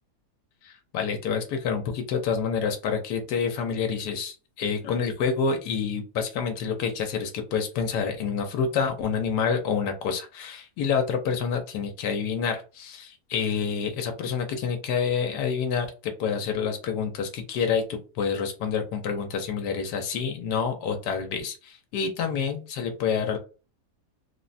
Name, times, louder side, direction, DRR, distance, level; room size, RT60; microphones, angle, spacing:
voice 1, 0.6-23.4, left 6 dB, 90° left, 4 dB, 1.2 m, -28 dB
3.5 x 2.1 x 2.5 m, 0.33 s
omnidirectional pair, 1.7 m